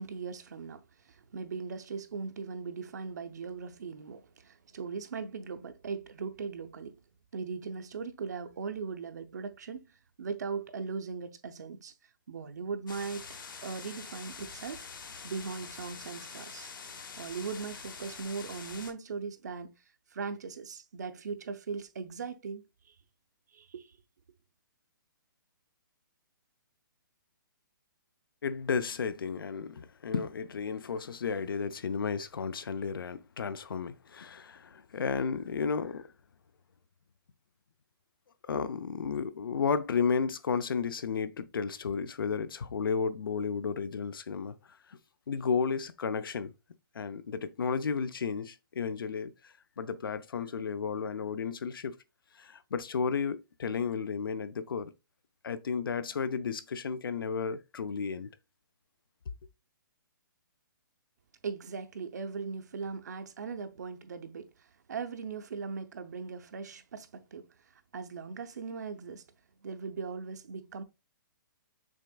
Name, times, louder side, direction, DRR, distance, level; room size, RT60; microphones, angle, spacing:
voice 1, 0.0-7.0 7.3-9.9 10.2-11.9 12.3-13.3 13.6-14.8 15.2-16.7 17.2-19.7 20.1-22.9 23.5-24.0 61.4-67.5 67.9-69.2 69.6-70.8, right 5 dB, 50° right, 0.6 m, -39 dB
sound 1, 12.9-18.9, left 5 dB, 70° left, 1.0 m, -45 dB
voice 2, 28.4-36.1 38.5-44.5 45.3-46.5 46.9-51.9 52.4-54.9 55.4-58.3, left 5 dB, 85° left, 0.6 m, -33 dB
6.3 x 3.5 x 2.2 m
hypercardioid pair, 175°, 11 cm